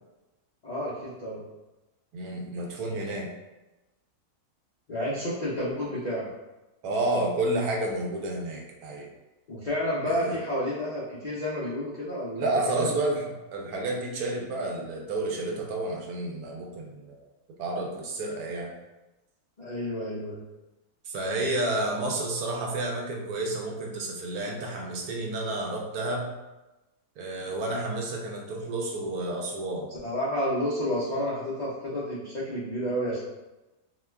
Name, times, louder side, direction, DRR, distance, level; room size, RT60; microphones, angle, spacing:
voice 1, 0.6-1.4 4.9-6.3 9.5-12.9 19.6-20.4 30.0-33.2, left 1 dB, 55° left, -10 dB, 0.4 m, -30 dB
voice 2, 2.1-3.3 6.8-9.1 10.0-10.4 12.4-13.2 13.5-17.2 17.6-18.7 21.1-26.3 27.2-29.9, right 2 dB, 75° right, 0 dB, 1.1 m, -30 dB
2.9 x 2.3 x 3.3 m, 1.0 s
omnidirectional pair, 1.7 m